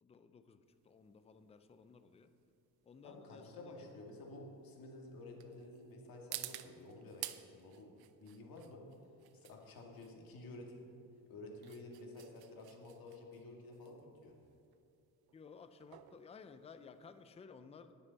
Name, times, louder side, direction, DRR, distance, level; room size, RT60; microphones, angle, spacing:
voice 1, 0.0-2.3 2.8-3.9 15.3-17.9, left 5 dB, 15° left, 10 dB, 0.4 m, -56 dB
sound 1, 0.7-17.3, right 14 dB, 75° right, 0.6 m, -53 dB
voice 2, 3.0-7.3 7.5-7.9 8.2-8.9 9.3-10.8 11.3-14.3, left 2 dB, 65° left, 0 dB, 2.0 m, -51 dB
19.0 x 7.0 x 4.1 m, 2.6 s
cardioid pair, 135°, 38 cm